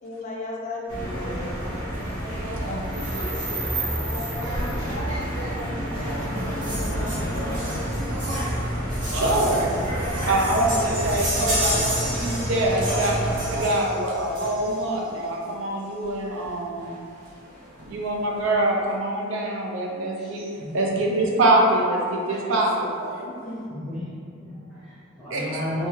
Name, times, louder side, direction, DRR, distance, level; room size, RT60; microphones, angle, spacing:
voice 1, 0.0-1.6 3.5-7.6 10.6-11.0 23.2-24.0, left 1 dB, 35° left, -2 dB, 0.4 m, -37 dB
sound 1, 0.9-13.6, right 1 dB, 85° right, 0.8 m, -28 dB
sound 2, 6.6-14.9 16.0-16.1 16.4-16.5 16.8-16.9 17.3-17.9 18.4-18.5, equal, 40° right, 0.8 m, -32 dB
voice 2, 8.8-9.8 10.3-13.2 13.5-16.9 17.9-23.3 25.3-25.6, right 1 dB, 65° right, -1 dB, 0.4 m, -24 dB
voice 3, 21.1-21.4 23.7-24.0 24.3-25.9, left 1 dB, ahead, -13 dB, 0.8 m, -33 dB
2.6 x 2.3 x 3.0 m, 2.3 s
head